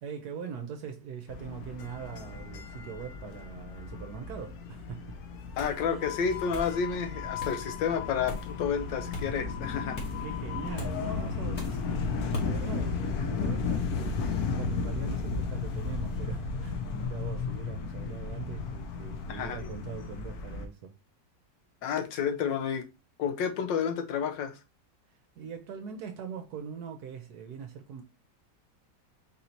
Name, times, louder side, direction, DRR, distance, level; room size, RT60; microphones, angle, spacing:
voice 1, 0.0-5.2 5.9-6.1 7.4-7.6 10.2-20.9 25.3-28.0, right 7 dB, 70° right, 1.1 m, -42 dB
sound 1, 1.3-20.7, left 4 dB, 65° left, 1.1 m, -34 dB
voice 2, 5.6-10.0 19.3-19.6 21.8-22.8 23.2-24.6, left 7 dB, 90° left, 1.4 m, -30 dB
sound 2, 5.6-5.8 6.5-6.8 7.4-7.6 8.3-8.5 9.1-9.3 10.0-10.2 10.8-10.9 11.6-11.8 12.3-12.5, left 1 dB, 50° left, 1.5 m, -38 dB
4.0 x 2.7 x 4.3 m
omnidirectional pair, 1.9 m